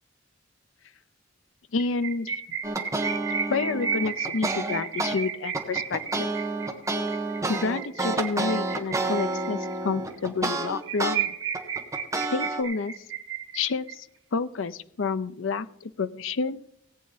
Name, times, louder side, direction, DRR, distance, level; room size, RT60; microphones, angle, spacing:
voice 1, 1.7-2.3 3.5-6.3 7.5-11.3 12.3-12.9 13.5-14.1 14.3-16.6, left 4 dB, 75° left, 13 dB, 0.5 m, -29 dB
sound 1, 1.8-9.7 10.1-10.2 10.5-10.6 10.8-13.9, right 7 dB, 75° right, 1.7 m, -33 dB
sound 2, 2.6-5.2 5.5-11.2 11.5-12.6, right 2 dB, 15° right, 1.3 m, -29 dB
18.0 x 8.5 x 4.0 m, 0.75 s
head